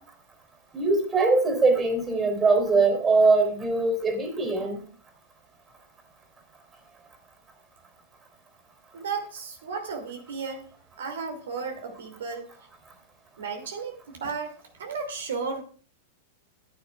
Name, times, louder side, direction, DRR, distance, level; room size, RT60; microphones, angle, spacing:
voice 1, 0.7-4.8, right 3 dB, 20° right, 7 dB, 3.6 m, -22 dB
voice 2, 8.9-10.7 11.0-12.5 13.4-15.6, right 5 dB, 70° right, 4 dB, 2.5 m, -34 dB
16.0 x 10.0 x 2.3 m, 0.40 s
figure-of-eight pair, 95°, 0 cm